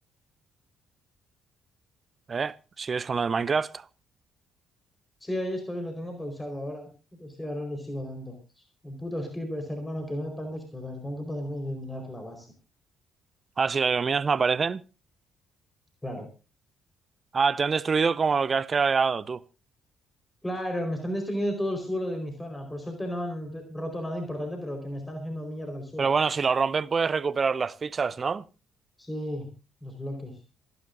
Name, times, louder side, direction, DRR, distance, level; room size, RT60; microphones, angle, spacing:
voice 1, 2.3-3.9 13.6-14.8 17.3-19.4 26.0-28.4, right 5 dB, 40° right, 0.7 m, -25 dB
voice 2, 5.2-6.9 7.2-12.5 16.0-16.3 20.4-26.1 29.0-29.5 29.8-30.4, equal, 15° left, 4.6 m, -33 dB
27.0 x 11.0 x 2.7 m
figure-of-eight pair, 45°, 0 cm